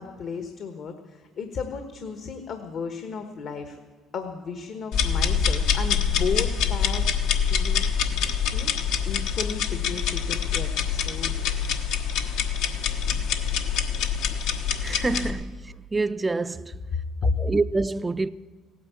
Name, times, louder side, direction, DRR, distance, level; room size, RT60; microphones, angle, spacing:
voice 1, 0.0-3.8 4.1-7.1 7.4-7.9 8.5-8.7 9.0-11.6 17.2-17.3, left 5 dB, 60° left, 1.2 m, -33 dB
sound 1, 4.9-15.3, left 7 dB, 80° left, 1.2 m, -25 dB
voice 2, 14.8-16.8 17.2-18.3, right 3 dB, 20° right, 0.4 m, -27 dB
16.5 x 9.4 x 8.5 m
supercardioid pair, 75°, 0 cm